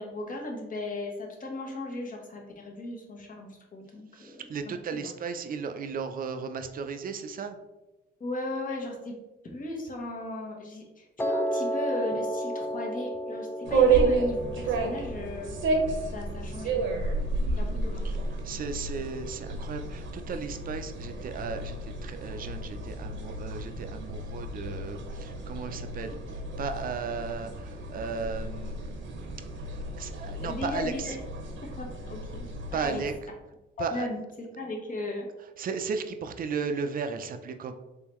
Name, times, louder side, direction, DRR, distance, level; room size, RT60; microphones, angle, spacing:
voice 1, 0.0-4.7 5.0-5.1 8.2-9.2 9.5-15.5 16.1-18.1 30.3-31.1 31.6-33.0 33.8-35.3, left 2 dB, 45° left, 1 dB, 1.0 m, -36 dB
voice 2, 4.1-7.6 17.4-18.2 18.4-29.5 29.9-31.2 32.7-33.1 33.8-34.1 35.6-37.7, right 5 dB, 45° right, 7 dB, 0.5 m, -35 dB
Piano, 11.2-17.3, equal, 10° left, 0.3 m, -34 dB
sound 1, 13.6-33.1, right 3 dB, 75° right, 0.8 m, -31 dB
3.7 x 3.3 x 3.0 m, 1.0 s
cardioid pair, 90°, 20 cm